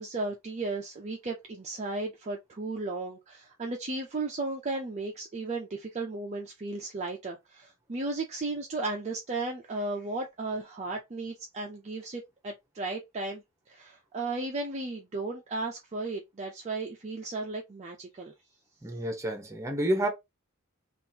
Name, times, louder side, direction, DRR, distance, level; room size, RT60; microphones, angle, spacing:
voice 1, 0.0-18.3, right 2 dB, 30° right, 0.5 m, -35 dB
voice 2, 18.8-20.1, right 1 dB, 15° right, 0.9 m, -29 dB
3.6 x 2.5 x 2.8 m
head